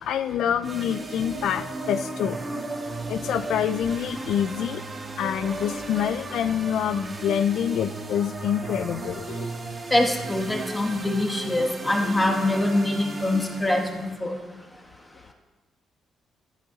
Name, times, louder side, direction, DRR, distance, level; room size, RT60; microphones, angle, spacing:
voice 1, 0.0-2.4 3.1-4.8 5.2-9.5, left 9 dB, 75° left, 12 dB, 0.4 m, -26 dB
sound 1, 0.6-14.1, right 3 dB, 25° right, 1.8 m, -35 dB
voice 2, 9.9-14.3, left 1 dB, 10° left, 2 dB, 1.4 m, -24 dB
13.0 x 10.0 x 4.0 m, 1.2 s
cardioid pair, 140°, 0 cm